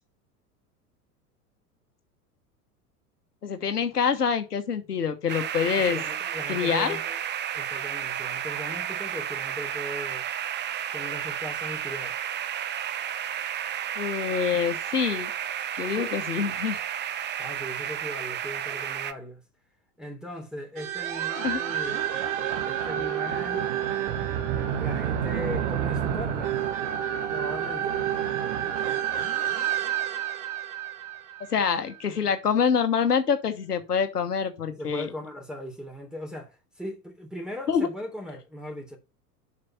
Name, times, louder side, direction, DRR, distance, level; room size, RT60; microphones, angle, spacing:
voice 1, 3.4-6.0 6.5-7.0 14.0-15.3 15.7-16.8 21.4-21.8 31.5-35.1 37.7-37.9, left 6 dB, 80° left, 1.3 m, -26 dB
sound 1, 5.3-19.1, right 10 dB, 25° right, 0.7 m, -32 dB
voice 2, 5.6-7.2 7.5-10.3 10.9-12.2 16.0-16.2 17.4-19.4 20.0-22.0 22.6-23.7 24.8-26.6 27.3-28.0 34.7-39.0, left 1 dB, ahead, 3.2 m, -38 dB
sound 2, 20.8-32.0, right 10 dB, 50° right, 1.9 m, -29 dB
7.7 x 5.8 x 5.7 m
figure-of-eight pair, 85°, 46 cm